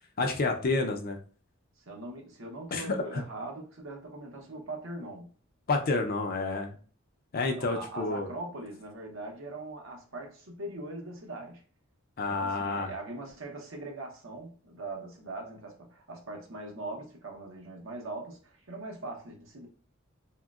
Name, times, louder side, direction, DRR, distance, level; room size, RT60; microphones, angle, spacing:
voice 1, 0.2-1.2 2.7-3.2 5.7-6.8 7.3-8.3 12.2-12.9, left 3 dB, 45° left, 0.5 m, -29 dB
voice 2, 1.8-5.3 7.6-11.6 12.2-19.7, right 2 dB, 65° right, 0.8 m, -41 dB
3.6 x 2.0 x 2.3 m
head